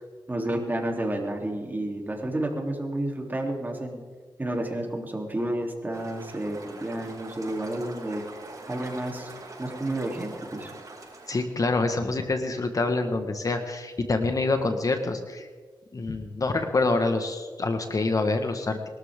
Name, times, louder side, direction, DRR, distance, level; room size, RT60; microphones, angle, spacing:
voice 1, 0.3-4.0 4.4-8.2 8.7-9.3 9.6-10.7, right 1 dB, 20° right, 1 dB, 3.2 m, -30 dB
sound 1, 5.9-11.4, right 3 dB, 45° right, 5.6 m, -43 dB
voice 2, 11.3-15.5 15.9-18.9, left 3 dB, 45° left, 7 dB, 1.5 m, -26 dB
22.5 x 13.0 x 3.7 m, 1.4 s
cardioid pair, 70°, 8 cm